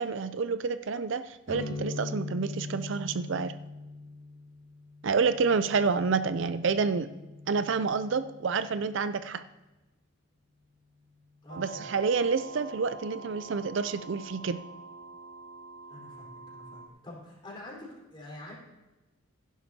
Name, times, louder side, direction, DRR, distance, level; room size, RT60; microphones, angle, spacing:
voice 1, 0.0-3.5 5.0-7.1 7.5-9.4 11.6-14.6, right 5 dB, 60° right, 12 dB, 0.4 m, -28 dB
sound 1, 1.5-9.1, left 3 dB, 50° left, 2.4 m, -42 dB
voice 2, 11.4-11.8 15.9-18.5, left 1 dB, 25° left, -4 dB, 4.2 m, -46 dB
sound 2, 11.5-16.9, right 4 dB, 80° right, 1.0 m, -45 dB
16.0 x 11.0 x 2.8 m, 1.1 s
head